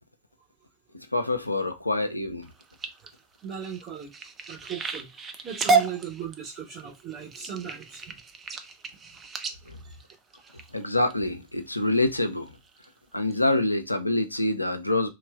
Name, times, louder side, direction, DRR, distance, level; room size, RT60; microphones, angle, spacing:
voice 1, 1.1-2.5 9.7-9.8 10.7-12.5 13.1-15.1, left 2 dB, 85° left, 0.4 m, -26 dB
sound 1, 2.4-11.1 11.7-12.1 12.5-12.9 13.3-13.4 13.7-13.8, right 4 dB, 20° right, 0.4 m, -31 dB
voice 2, 3.4-4.1 4.5-8.2 9.8-10.0 10.5-10.7, right 8 dB, 40° right, 1.8 m, -38 dB
3.1 x 2.3 x 2.4 m
figure-of-eight pair, 90°, 0 cm